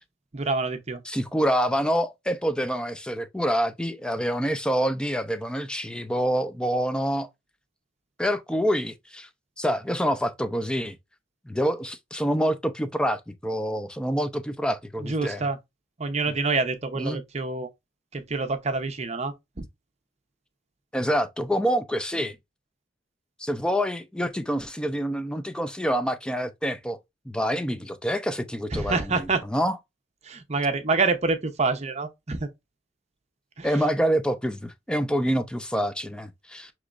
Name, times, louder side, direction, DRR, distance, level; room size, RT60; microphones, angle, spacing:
voice 1, 0.3-1.0 15.0-15.6 16.0-17.7 18.1-19.6 28.7-29.4 30.2-32.5 33.6-33.8, right 3 dB, 35° right, 0.7 m, -27 dB
voice 2, 1.1-7.3 8.2-9.3 9.6-11.0 11.5-15.4 17.0-17.2 20.9-22.4 23.4-27.0 27.3-29.8 33.6-36.7, equal, 5° left, 0.4 m, -26 dB
6.4 x 3.0 x 2.4 m
head